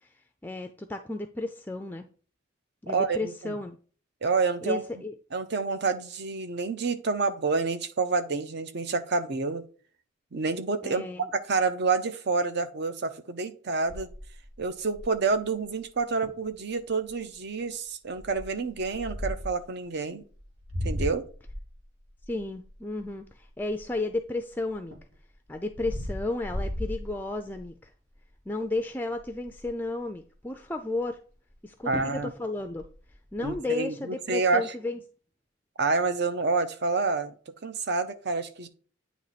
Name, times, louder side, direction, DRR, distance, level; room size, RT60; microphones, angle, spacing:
voice 1, 0.4-2.1 2.8-3.8 4.6-5.1 10.8-11.3 22.3-24.9 25.5-27.9 28.5-31.2 31.6-32.8 33.3-35.0, left 2 dB, 10° left, 0.4 m, -33 dB
voice 2, 2.9-3.6 4.2-4.8 5.3-9.7 10.3-11.0 11.3-14.1 14.6-20.3 20.8-21.3 31.8-32.3 33.4-34.7 35.8-37.3 37.6-38.7, right 4 dB, 60° right, 0.7 m, -28 dB
sound 1, 13.9-15.3 15.9-16.0 16.2-16.5 17.0-17.3 18.1-19.6 20.3-24.2 24.7-27.7 28.2-28.4 28.7-28.8 29.1-29.8 31.5-31.6 31.9-32.3 32.6-33.5, equal, 85° right, 1.4 m, -37 dB
9.0 x 3.0 x 4.1 m
head